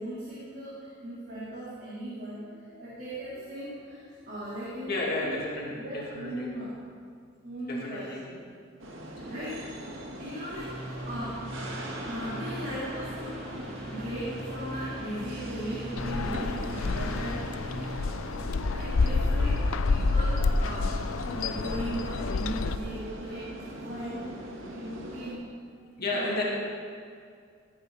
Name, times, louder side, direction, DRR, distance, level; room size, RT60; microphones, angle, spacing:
voice 1, 0.0-5.4 5.8-6.7 7.4-8.3 9.3-9.6 10.2-13.4 13.9-17.4 18.7-21.0 21.3-24.3 24.7-25.8 26.1-26.4, equal, 45° right, -10 dB, 3.5 m, -38 dB
voice 2, 4.9-6.5 7.6-8.2 9.2-9.3 26.0-26.4, left 2 dB, 50° left, -4 dB, 2.4 m, -32 dB
sound 1, 8.8-25.3, right 1 dB, 70° right, 1.9 m, -41 dB
sound 2, 10.5-18.0, equal, 5° left, 3.6 m, -41 dB
sound 3, 16.0-22.8, left 3 dB, 85° left, 0.5 m, -28 dB
19.0 x 9.1 x 4.1 m, 2.2 s
head